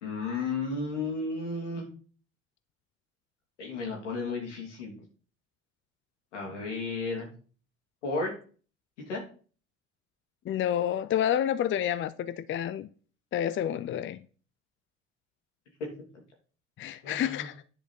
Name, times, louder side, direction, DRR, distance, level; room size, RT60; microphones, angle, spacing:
voice 1, 0.0-1.9 3.6-4.9 6.3-7.3 8.0-8.3 9.1-9.2 17.0-17.5, left 3 dB, 85° left, 2.7 m, -33 dB
voice 2, 10.5-12.9 13.3-14.2 16.8-17.6, left 10 dB, 35° left, 0.5 m, -29 dB
9.9 x 5.0 x 4.5 m
hypercardioid pair, 55°, 35 cm